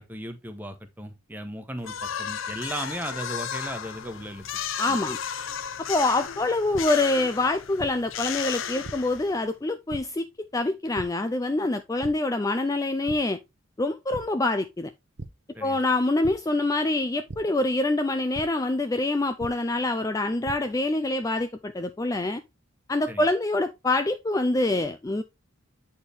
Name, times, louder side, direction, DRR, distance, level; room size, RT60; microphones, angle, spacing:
voice 1, 0.0-4.4 4.9-5.0 15.5-15.8 23.1-23.3, right 1 dB, 10° right, 0.9 m, -36 dB
sound 1, 1.8-9.5, left 8 dB, 70° left, 0.6 m, -34 dB
voice 2, 4.8-5.2 5.9-13.4 13.8-14.9 15.6-22.4 22.9-25.2, left 2 dB, 15° left, 0.3 m, -25 dB
sound 2, 6.7-6.8 7.8-7.9 8.8-8.9 9.9-10.0 10.9-11.0 12.0-12.1 12.6-12.7 13.1-13.2 14.1-14.2 15.2-15.3 16.2-16.3 17.3-17.4 18.3-18.4 19.4-19.5 20.2-20.5, right 2 dB, 55° right, 0.7 m, -37 dB
8.6 x 4.3 x 3.4 m
head